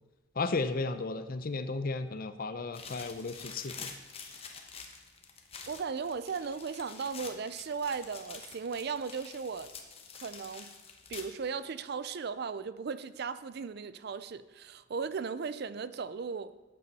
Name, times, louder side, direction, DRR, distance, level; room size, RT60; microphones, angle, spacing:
voice 1, 0.4-3.9, left 3 dB, 45° left, 0.5 m, -34 dB
sound 1, 2.7-11.5, left 5 dB, 25° left, 1.0 m, -47 dB
voice 2, 5.7-9.7 10.2-10.7 11.1-16.5, right 5 dB, 50° right, 0.4 m, -36 dB
12.0 x 8.5 x 4.1 m
head